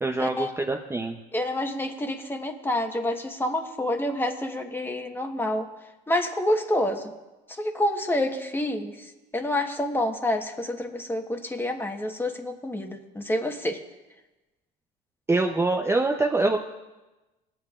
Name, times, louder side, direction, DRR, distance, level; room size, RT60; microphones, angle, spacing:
voice 1, 0.0-1.2 15.3-16.6, right 2 dB, 15° right, 3 dB, 0.7 m, -24 dB
voice 2, 1.3-5.7 6.1-7.1 7.5-13.8, left 1 dB, 10° left, 4 dB, 1.3 m, -28 dB
19.0 x 8.7 x 2.5 m, 1.1 s
supercardioid pair, 90°, 18 cm